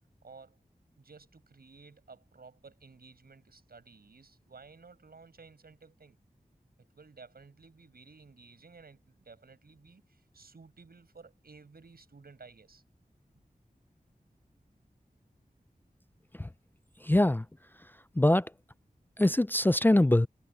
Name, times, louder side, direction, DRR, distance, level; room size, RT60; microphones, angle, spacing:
voice 1, 0.2-0.6 1.0-6.2 6.8-12.8, right 4 dB, 85° right, 7.6 m, -54 dB
voice 2, 17.0-17.4 18.2-18.5 19.2-20.3, left 1 dB, 15° left, 0.4 m, -23 dB
cardioid pair, 45°, 15 cm